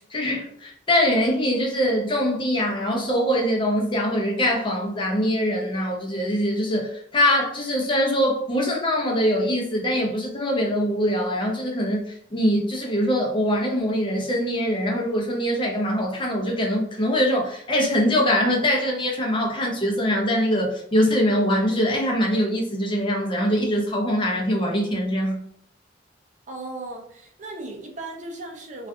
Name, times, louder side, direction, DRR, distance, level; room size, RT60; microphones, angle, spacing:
voice 1, 0.1-25.4, equal, 25° left, -1 dB, 0.6 m, -23 dB
voice 2, 26.5-28.9, right 2 dB, 40° right, 0 dB, 0.5 m, -36 dB
2.5 x 2.4 x 2.3 m, 0.66 s
head